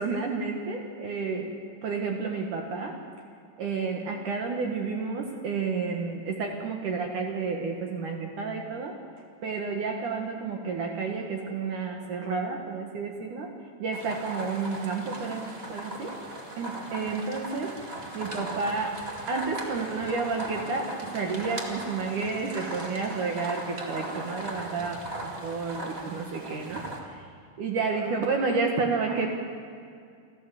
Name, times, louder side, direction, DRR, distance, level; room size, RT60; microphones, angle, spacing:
voice 1, 0.0-1.5 1.8-3.0 3.6-9.0 9.4-13.5 13.8-16.2 16.6-17.7 18.1-19.0 19.3-27.3 27.6-29.3, right 4 dB, 60° right, 2 dB, 2.3 m, -31 dB
sound 1, 13.9-27.0, right 1 dB, 85° right, 0.5 m, -38 dB
28.5 x 13.0 x 7.7 m, 2.3 s
omnidirectional pair, 5.4 m